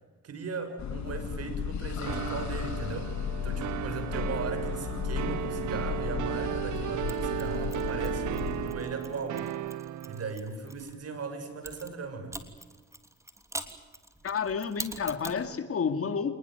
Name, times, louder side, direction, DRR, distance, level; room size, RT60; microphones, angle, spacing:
voice 1, 0.2-3.1 3.4-9.5 10.0-12.4, right 4 dB, 55° right, 9 dB, 6.5 m, -38 dB
sound 1, 0.8-8.7, left 8 dB, 65° left, 2.5 m, -34 dB
sound 2, 2.1-10.3, right 13 dB, 75° right, 0.8 m, -35 dB
Mechanisms, 7.1-10.9 11.6-15.5, right 1 dB, 10° right, 3.1 m, -44 dB
voice 2, 14.2-16.4, left 6 dB, 50° left, 9 dB, 2.4 m, -30 dB
27.0 x 20.5 x 9.3 m, 1.2 s
cardioid pair, 90°, 30 cm